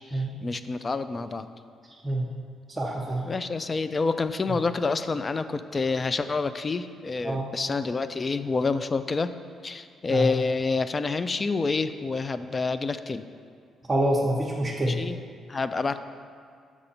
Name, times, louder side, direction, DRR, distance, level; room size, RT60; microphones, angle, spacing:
voice 1, 0.1-1.5 3.2-9.3 9.6-13.2 14.9-15.2 15.5-16.0, left 4 dB, 30° left, 11 dB, 0.3 m, -28 dB
voice 2, 2.8-3.2 7.2-7.5 10.1-10.3 13.9-15.0, right 1 dB, 25° right, -3 dB, 0.8 m, -26 dB
6.5 x 6.0 x 4.2 m, 2.2 s
cardioid pair, 90°, 0 cm